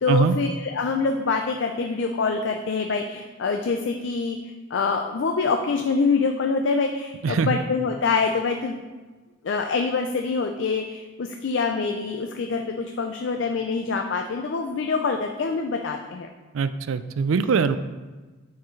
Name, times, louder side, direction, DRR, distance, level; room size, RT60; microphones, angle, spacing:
voice 1, 0.0-8.8 9.4-16.3, left 4 dB, 65° left, 4 dB, 0.4 m, -25 dB
voice 2, 7.2-7.6 16.5-17.8, right 5 dB, 85° right, 12 dB, 0.4 m, -22 dB
9.1 x 4.6 x 3.2 m, 1.3 s
head